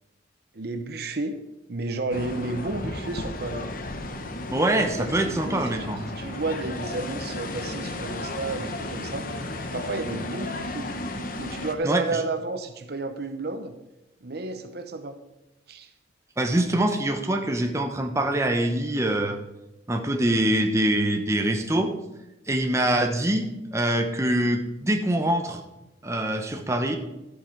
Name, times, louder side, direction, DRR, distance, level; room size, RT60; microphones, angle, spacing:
voice 1, 0.5-1.4 1.7-3.7 5.0-9.3 9.7-10.9 11.4-13.7 14.2-15.2 15.7-15.9, right 3 dB, 55° right, 8 dB, 0.8 m, -32 dB
sound 1, 2.1-11.7, left 2 dB, 45° left, 1.0 m, -34 dB
voice 2, 4.5-6.0 11.8-12.0 16.4-19.4 19.9-21.9 22.5-25.6 26.0-27.0, right 1 dB, 15° right, 4 dB, 0.9 m, -24 dB
12.5 x 8.3 x 4.6 m, 0.95 s
head